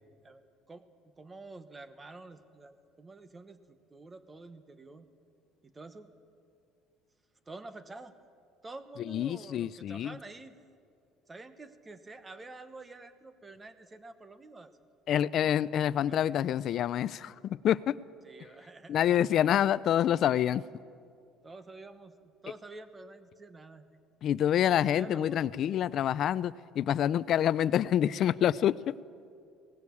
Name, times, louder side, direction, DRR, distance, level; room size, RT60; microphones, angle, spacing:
voice 1, 0.2-5.1 5.6-6.1 7.5-8.1 8.6-10.5 11.3-14.8 15.1-16.5 18.2-19.1 21.4-24.0 24.9-25.5, right 3 dB, 15° right, 1.1 m, -49 dB
voice 2, 9.1-10.2 15.1-18.0 18.9-20.6 24.2-28.9, left 10 dB, 50° left, 0.4 m, -27 dB
19.0 x 17.5 x 8.5 m
cardioid pair, 135°, 0 cm